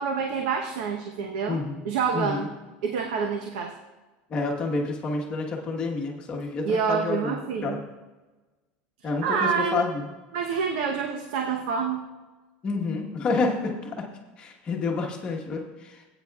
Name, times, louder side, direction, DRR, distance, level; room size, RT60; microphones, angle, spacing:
voice 1, 0.0-2.5 2.8-3.7 6.6-7.8 9.2-9.8 10.3-12.0, right 6 dB, 70° right, 2 dB, 0.9 m, -27 dB
voice 2, 1.5-1.8 2.1-2.5 4.3-7.8 9.0-10.1 12.6-14.1 14.4-16.1, left 3 dB, 25° left, 0 dB, 1.3 m, -29 dB
17.5 x 9.0 x 2.4 m, 1.2 s
cardioid pair, 180°, 4 cm